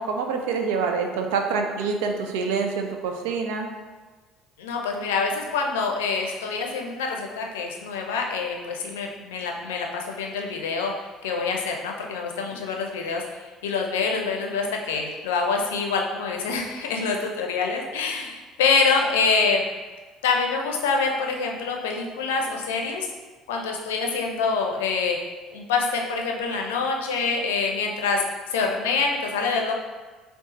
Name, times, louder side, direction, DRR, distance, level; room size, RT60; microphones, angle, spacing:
voice 1, 0.0-3.7, right 5 dB, 75° right, 3 dB, 0.5 m, -26 dB
voice 2, 4.6-13.2 13.6-19.6 20.2-23.1 23.5-25.2 25.5-28.2 28.5-29.7, left 4 dB, 80° left, 1 dB, 0.5 m, -26 dB
3.7 x 2.3 x 4.0 m, 1.3 s
hypercardioid pair, 65°, 0 cm